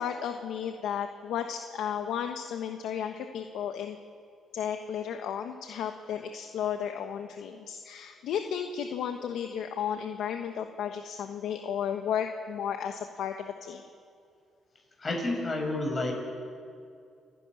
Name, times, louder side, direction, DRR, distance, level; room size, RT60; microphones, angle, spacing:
voice 1, 0.0-4.0 4.5-13.8, left 8 dB, 80° left, 5 dB, 1.2 m, -33 dB
voice 2, 15.0-16.2, left 2 dB, 30° left, 1 dB, 6.8 m, -30 dB
28.5 x 11.5 x 9.8 m, 2.5 s
cardioid pair, 90°, 0 cm